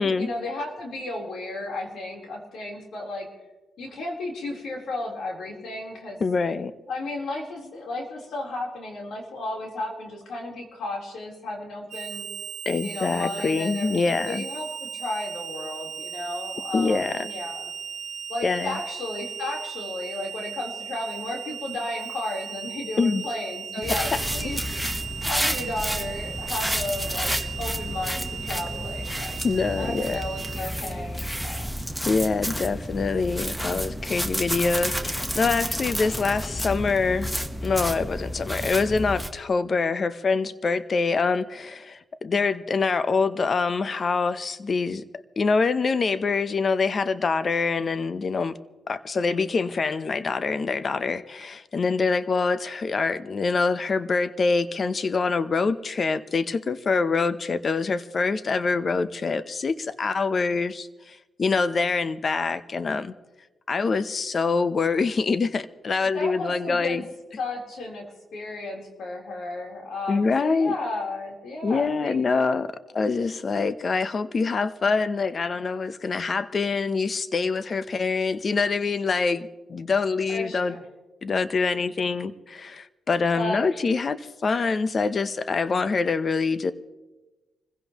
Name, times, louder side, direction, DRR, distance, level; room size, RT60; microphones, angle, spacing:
voice 1, 0.2-3.3 3.8-6.2 6.9-12.3 12.8-17.7 18.3-24.8 25.2-29.4 29.7-31.8 66.0-67.0 67.4-68.1 68.3-72.2 80.3-80.8 83.3-83.7, left 2 dB, 75° left, 3.8 m, -34 dB
voice 2, 6.2-6.7 12.7-14.4 16.7-17.3 18.4-18.8 23.0-23.2 29.4-30.2 32.0-45.0 45.4-48.6 48.9-63.1 63.7-67.0 70.1-70.8 71.6-80.7 81.2-86.7, left 4 dB, 50° left, 0.8 m, -25 dB
Harmonica, 11.9-30.6, right 8 dB, 65° right, 1.0 m, -37 dB
sound 1, 23.8-39.3, equal, ahead, 1.2 m, -30 dB
25.5 x 16.0 x 3.1 m
cardioid pair, 70°, 0 cm